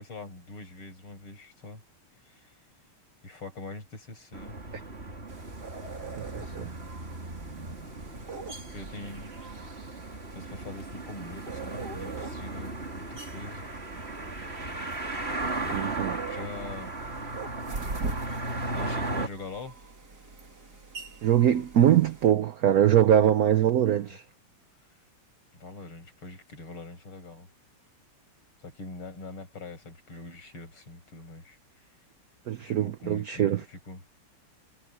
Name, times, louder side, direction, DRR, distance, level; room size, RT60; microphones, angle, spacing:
voice 1, 0.0-1.8 2.2-2.5 3.2-4.6 8.5-9.3 10.3-13.6 16.2-16.9 18.7-19.8 24.1-24.2 25.5-27.5 28.6-31.9 32.6-34.0, left 3 dB, 75° left, 7.4 m, -43 dB
sound 1, 4.3-19.3, right 2 dB, 25° right, 3.2 m, -36 dB
sound 2, 5.3-22.3, right 4 dB, 45° right, 3.5 m, -43 dB
voice 2, 6.2-6.7 15.7-16.2 21.2-24.2 32.5-33.6, right 10 dB, 80° right, 0.8 m, -23 dB
omnidirectional pair, 2.4 m